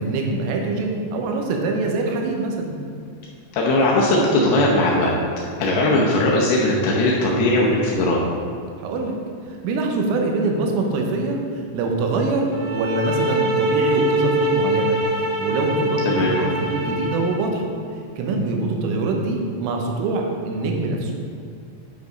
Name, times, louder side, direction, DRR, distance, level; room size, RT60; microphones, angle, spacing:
voice 1, 0.0-2.8 5.9-6.1 8.8-9.2 9.5-17.7 18.2-21.1, right 3 dB, 90° right, 2 dB, 3.5 m, -24 dB
voice 2, 3.5-5.1 5.6-8.2 16.1-16.3, left 1 dB, 80° left, -3 dB, 2.3 m, -19 dB
sound 1, 12.5-17.5, right 1 dB, 70° right, 2.7 m, -23 dB
9.0 x 5.0 x 5.3 m, 2.2 s
omnidirectional pair, 5.7 m